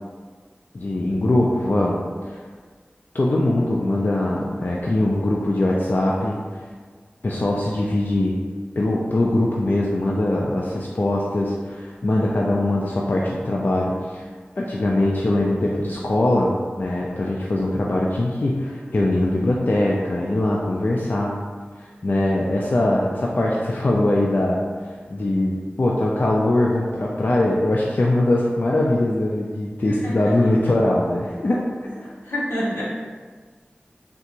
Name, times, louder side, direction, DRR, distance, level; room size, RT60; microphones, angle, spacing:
voice 1, 0.7-2.4 3.1-6.6 7.2-8.4 8.8-14.3 14.6-21.3 21.8-31.6 32.0-32.1, left 1 dB, 55° left, -3 dB, 0.3 m, -22 dB
voice 2, 32.3-32.8, equal, 85° left, -7 dB, 1.0 m, -26 dB
3.5 x 2.9 x 2.4 m, 1.5 s
wide cardioid pair, 50°, 4 cm